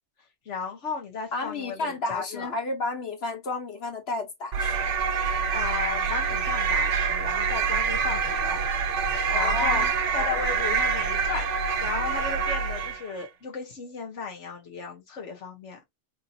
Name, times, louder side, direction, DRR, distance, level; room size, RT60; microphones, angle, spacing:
voice 1, 0.4-2.5 5.5-8.6 9.1-9.8 10.1-15.8, left 6 dB, 85° left, 1.5 m, -35 dB
voice 2, 1.3-4.8 9.3-10.4, left 3 dB, 60° left, 1.2 m, -32 dB
sound 1, 4.5-13.1, right 5 dB, 90° right, 0.9 m, -26 dB
3.6 x 2.6 x 2.7 m
omnidirectional pair, 1.2 m